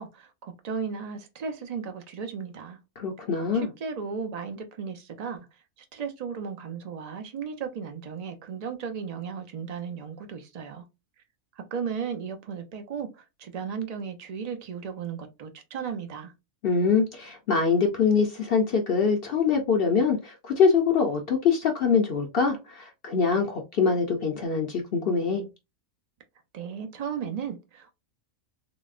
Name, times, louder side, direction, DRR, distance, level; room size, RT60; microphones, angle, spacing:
voice 1, 0.0-2.8 3.5-5.5 5.9-10.8 11.6-16.3 26.5-27.9, right 6 dB, 55° right, 0.4 m, -35 dB
voice 2, 3.0-3.7 16.6-25.5, left 5 dB, 60° left, 0.6 m, -24 dB
3.9 x 2.0 x 2.4 m
omnidirectional pair, 1.4 m